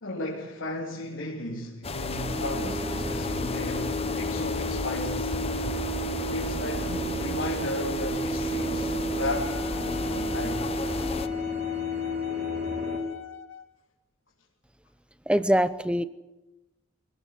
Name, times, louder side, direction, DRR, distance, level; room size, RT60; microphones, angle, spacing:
voice 1, 0.0-5.4 6.3-10.6, left 1 dB, 65° left, -3 dB, 3.6 m, -35 dB
sound 1, 1.8-11.3, left 3 dB, 30° left, 0.8 m, -34 dB
sound 2, 2.1-13.0, equal, 45° right, 4.6 m, -32 dB
Wind instrument woodwind instrument, 9.2-13.8, left 10 dB, 85° left, 2.2 m, -42 dB
voice 2, 15.3-16.0, equal, 5° right, 13 dB, 0.8 m, -23 dB
25.0 x 17.5 x 8.5 m, 1.0 s
head